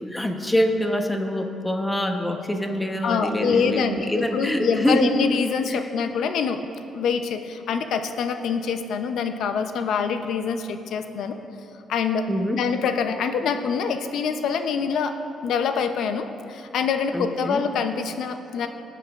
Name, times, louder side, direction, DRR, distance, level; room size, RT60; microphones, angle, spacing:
voice 1, 0.0-5.1 5.7-5.8 12.3-12.6 17.1-17.6, equal, 10° left, 5 dB, 0.9 m, -25 dB
voice 2, 3.0-6.6 6.9-11.4 11.9-12.2 12.5-15.1 15.4-18.7, left 6 dB, 75° left, 8 dB, 0.6 m, -25 dB
18.5 x 9.1 x 2.5 m, 2.7 s
cardioid pair, 90°, 0 cm